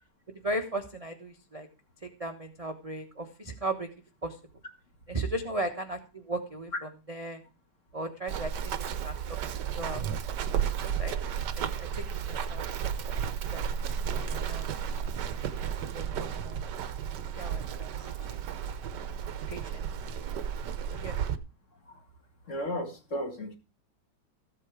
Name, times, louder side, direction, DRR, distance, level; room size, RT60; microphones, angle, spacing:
voice 1, 0.4-1.7 2.0-3.9 4.2-4.4 5.1-7.4 7.9-8.5 9.0-9.2 9.8-10.0 10.8-11.1 11.5-12.0 12.3-12.8 13.5-15.4 15.9-16.6 17.3-18.4 19.5-19.8 20.9-21.2, right 2 dB, 25° right, 5 dB, 0.9 m, -37 dB
Run, 8.3-21.4, right 8 dB, 60° right, 1.4 m, -33 dB
voice 2, 22.5-23.6, left 1 dB, 35° left, 4 dB, 2.3 m, -34 dB
14.5 x 8.4 x 4.9 m, 0.32 s
omnidirectional pair, 2.3 m